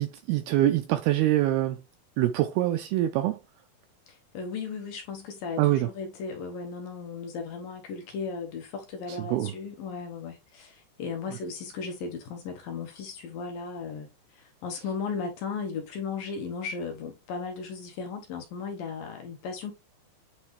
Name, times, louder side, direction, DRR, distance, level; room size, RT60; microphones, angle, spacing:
voice 1, 0.0-1.8 2.2-3.4 5.6-5.9 9.3-9.5, right 14 dB, 80° right, 2.2 m, -24 dB
voice 2, 4.1-19.7, left 5 dB, 70° left, 2.4 m, -36 dB
9.5 x 3.3 x 3.2 m
omnidirectional pair, 4.9 m